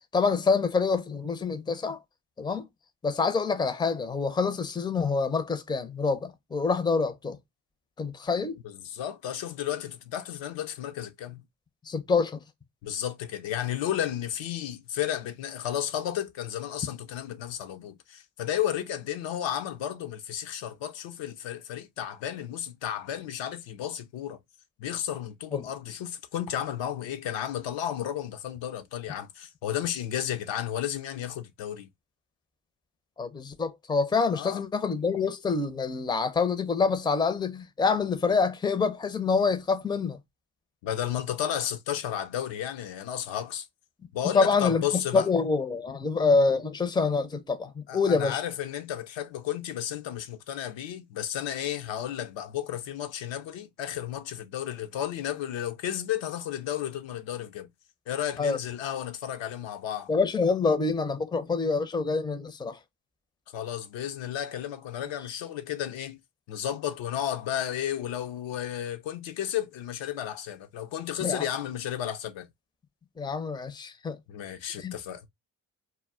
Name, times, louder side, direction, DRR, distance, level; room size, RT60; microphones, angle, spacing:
voice 1, 0.1-2.0 2.4-2.7 3.0-7.4 8.0-8.6 11.9-12.4 25.5-25.6 33.2-40.2 44.2-44.8 45.1-48.4 58.4-58.6 60.1-62.8 71.2-71.4 73.2-74.2 74.8-74.9, left 4 dB, 10° left, 0.5 m, -26 dB
voice 2, 8.6-11.4 12.8-24.4 24.8-31.9 34.3-34.6 40.8-43.7 44.1-45.3 47.9-57.7 58.1-60.1 63.5-66.2 66.5-72.5 74.3-75.2, left 10 dB, 70° left, 0.6 m, -33 dB
2.1 x 2.1 x 3.6 m
supercardioid pair, 45°, 47 cm